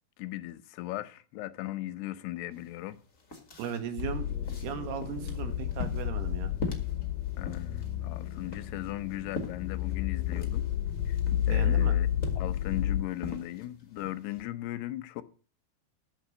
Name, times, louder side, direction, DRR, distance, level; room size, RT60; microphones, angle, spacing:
voice 1, 0.2-3.0 7.4-10.7 11.0-11.2 11.5-12.1 12.4-15.2, left 15 dB, 90° left, 3.0 m, -38 dB
sound 1, 2.5-2.6 2.9-14.4, left 2 dB, 30° left, 1.5 m, -43 dB
voice 2, 3.6-4.3 4.6-6.5 11.5-11.9, right 8 dB, 80° right, 3.6 m, -36 dB
sound 2, 4.0-13.0, left 11 dB, 70° left, 2.4 m, -31 dB
13.0 x 5.0 x 8.5 m
omnidirectional pair, 4.6 m